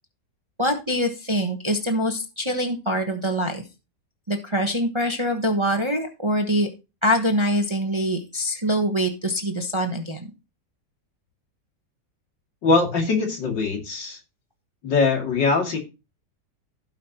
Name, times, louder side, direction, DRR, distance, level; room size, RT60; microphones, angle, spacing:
voice 1, 0.6-3.6 4.3-6.7 7.0-10.3, equal, 20° right, 4 dB, 1.0 m, -24 dB
voice 2, 12.6-14.2 14.8-15.8, left 4 dB, 80° left, 1 dB, 3.2 m, -22 dB
16.0 x 5.8 x 2.9 m, 0.29 s
omnidirectional pair, 2.0 m